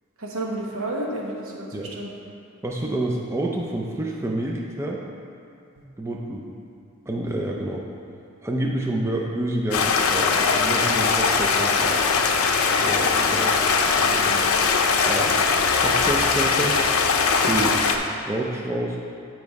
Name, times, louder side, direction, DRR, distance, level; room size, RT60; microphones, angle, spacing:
voice 1, 0.2-2.1 13.3-13.4 14.2-14.4, right 1 dB, 75° right, -1 dB, 1.0 m, -31 dB
voice 2, 2.6-5.0 6.0-6.5 7.1-7.8 8.4-12.0 12.7-13.5 14.0-14.4 15.0-15.3 15.8-16.8 17.5-17.8 18.2-19.0, right 1 dB, 15° right, -2 dB, 0.4 m, -28 dB
Stream, 9.7-18.0, left 5 dB, 85° left, 0.5 m, -20 dB
7.4 x 4.6 x 4.6 m, 2.4 s
head